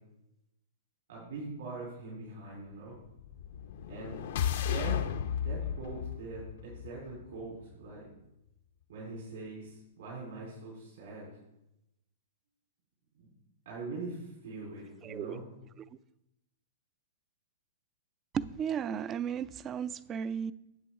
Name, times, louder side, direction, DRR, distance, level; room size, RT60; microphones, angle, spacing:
voice 1, 1.1-3.0 3.9-4.2 4.5-5.0 5.4-8.1 8.9-11.3 13.2-13.3 13.7-15.4, right 3 dB, 70° right, 3.9 m, -42 dB
sound 1, 3.2-7.4, left 9 dB, 65° left, 0.7 m, -34 dB
voice 2, 15.0-15.4 15.8-15.9 18.3-20.5, right 8 dB, 25° right, 0.4 m, -35 dB
9.5 x 7.7 x 3.8 m
hypercardioid pair, 125°, 0 cm